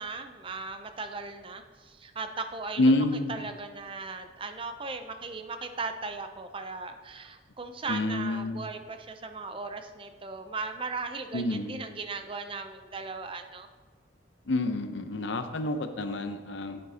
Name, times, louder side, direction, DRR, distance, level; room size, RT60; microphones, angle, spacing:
voice 1, 0.0-13.7, right 4 dB, 30° right, 7 dB, 0.5 m, -38 dB
voice 2, 2.8-3.4 7.9-8.7 11.3-11.8 14.5-16.8, left 2 dB, 70° left, 8 dB, 0.7 m, -28 dB
9.1 x 8.6 x 2.8 m, 1.5 s
head